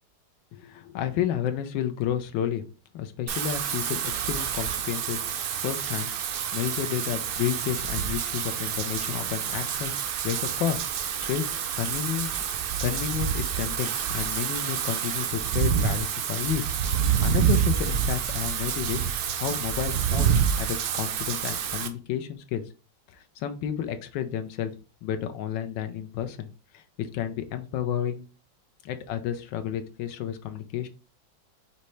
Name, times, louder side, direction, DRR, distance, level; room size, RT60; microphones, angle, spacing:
voice 1, 0.5-2.6 2.9-6.1 6.5-9.9 10.2-10.8 11.2-11.4 11.8-12.3 12.8-19.0 19.4-22.6 23.4-24.7 25.0-26.5 26.7-28.2 28.8-30.9, left 10 dB, 75° left, 8 dB, 1.2 m, -31 dB
Wind / Rain, 3.3-21.9, right 8 dB, 90° right, 0.8 m, -28 dB
5.3 x 2.8 x 3.1 m, 0.35 s
omnidirectional pair, 2.2 m